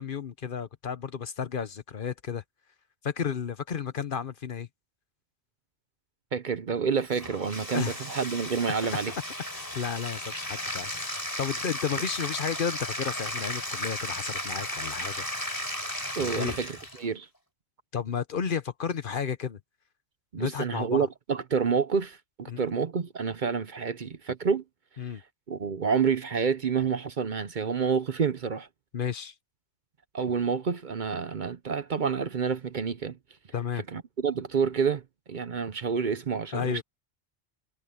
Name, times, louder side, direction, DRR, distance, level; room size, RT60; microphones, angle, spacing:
voice 1, 0.0-2.4 3.0-4.7 7.7-8.0 9.5-15.2 16.2-16.6 17.9-19.6 20.4-21.1 22.5-22.7 25.0-25.2 28.9-29.3 33.5-33.8 36.5-36.8, left 7 dB, 55° left, 1.0 m, -32 dB
voice 2, 6.3-9.1 16.2-17.3 20.3-24.6 25.5-28.7 30.1-33.2 33.9-35.0 35.3-36.8, right 6 dB, 50° right, 0.8 m, -28 dB
Bathtub (filling or washing), 7.0-17.1, left 1 dB, 20° left, 4.1 m, -35 dB
omnidirectional pair, 1.1 m